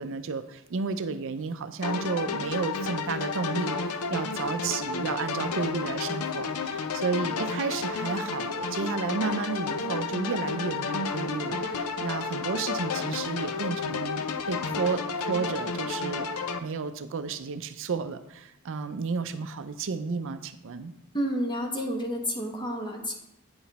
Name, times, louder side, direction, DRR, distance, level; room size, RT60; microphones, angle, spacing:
voice 1, 0.0-20.9, right 5 dB, 60° right, 10 dB, 0.5 m, -32 dB
sound 1, 1.8-16.6, left 4 dB, 80° left, 0.6 m, -31 dB
voice 2, 21.1-23.2, equal, 20° left, 2 dB, 1.1 m, -30 dB
8.7 x 5.9 x 4.1 m, 0.83 s
head